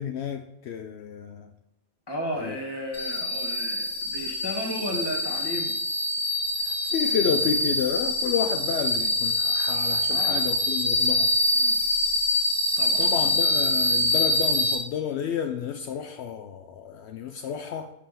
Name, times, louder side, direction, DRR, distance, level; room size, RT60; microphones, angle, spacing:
voice 1, 0.0-1.5 2.4-2.5 6.6-11.3 13.0-17.9, left 8 dB, 75° left, 6 dB, 0.8 m, -31 dB
voice 2, 2.1-5.7 10.1-10.4 11.5-11.8 12.8-13.4 14.1-14.2, equal, 20° left, 0 dB, 1.5 m, -34 dB
sound 1, 2.9-14.8, left 1 dB, 45° left, 1.8 m, -25 dB
5.7 x 4.9 x 6.5 m, 0.91 s
omnidirectional pair, 1.2 m